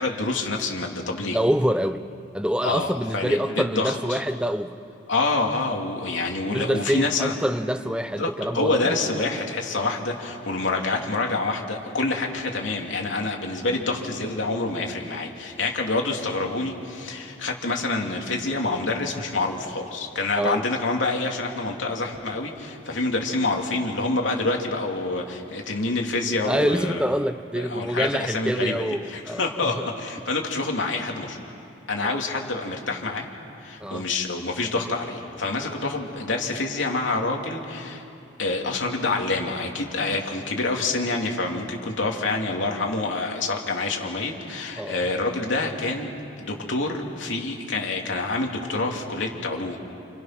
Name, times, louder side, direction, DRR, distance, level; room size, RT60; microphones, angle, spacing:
voice 1, 0.0-1.4 2.6-4.2 5.1-7.3 8.2-27.0 27.5-28.8 29.1-31.4 31.9-33.3 33.6-38.0 38.4-46.1 46.4-49.8, left 3 dB, 85° left, 3.0 m, -27 dB
voice 2, 1.2-2.0 2.3-4.8 6.5-9.0 20.4-20.6 26.4-29.9 32.0-32.2 33.8-34.1 44.8-45.1 45.6-45.7 46.6-46.7, equal, 5° right, 0.7 m, -26 dB
29.5 x 29.0 x 6.1 m
head